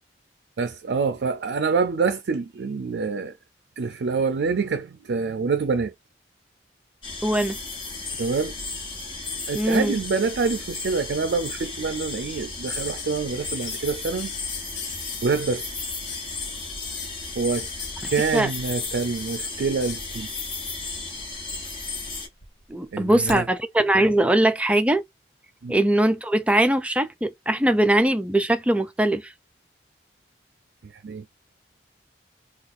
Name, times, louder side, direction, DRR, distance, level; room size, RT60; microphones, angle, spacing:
voice 1, 0.6-3.3 3.8-5.9 8.2-8.6 9.5-14.3 15.2-15.7 17.4-17.7 18.1-20.3 22.9-23.5 25.6-25.8 30.8-31.2, right 4 dB, 75° right, 0.4 m, -26 dB
sound 1, 7.0-22.3, left 3 dB, 30° left, 1.2 m, -34 dB
voice 2, 7.2-7.6 9.5-10.0 18.0-18.5 22.7-25.0 25.7-29.3, right 1 dB, 5° right, 0.4 m, -21 dB
sound 2, 12.6-13.8 14.2-15.2 16.1-16.3 16.7-17.1 17.5-19.4 19.8-20.1 21.1-21.7 22.0-23.4 24.8-24.9, left 7 dB, 80° left, 1.1 m, -38 dB
2.5 x 2.4 x 4.0 m
head